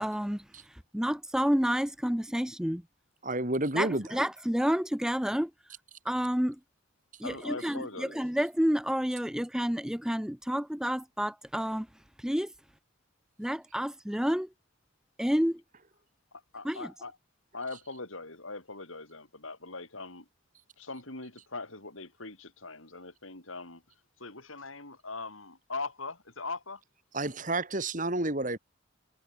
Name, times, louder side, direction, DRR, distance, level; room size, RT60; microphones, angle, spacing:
voice 1, 0.0-2.8 3.8-5.5 6.0-6.6 7.2-11.9 12.2-12.5 13.4-14.5 15.2-15.6 16.6-16.9, equal, 5° right, 0.6 m, -29 dB
voice 2, 3.2-4.1 27.1-28.6, right 2 dB, 40° right, 3.9 m, -30 dB
voice 3, 7.2-8.2 16.5-17.1 17.5-20.2 20.8-23.8 24.2-26.8, left 3 dB, 80° left, 6.7 m, -41 dB
head